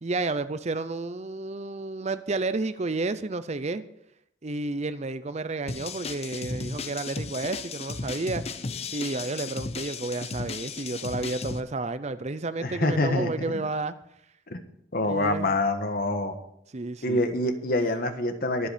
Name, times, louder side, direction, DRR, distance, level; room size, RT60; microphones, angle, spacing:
voice 1, 0.0-3.8 4.4-8.4 8.9-13.9 15.0-15.5 16.7-17.2, right 3 dB, 35° right, 13 dB, 0.6 m, -31 dB
sound 1, 5.7-11.6, left 4 dB, 30° left, 0.7 m, -35 dB
voice 2, 12.6-13.7 14.5-14.6 14.9-16.3 17.0-18.7, left 2 dB, 45° left, 7 dB, 1.5 m, -26 dB
22.5 x 8.0 x 5.1 m, 0.75 s
head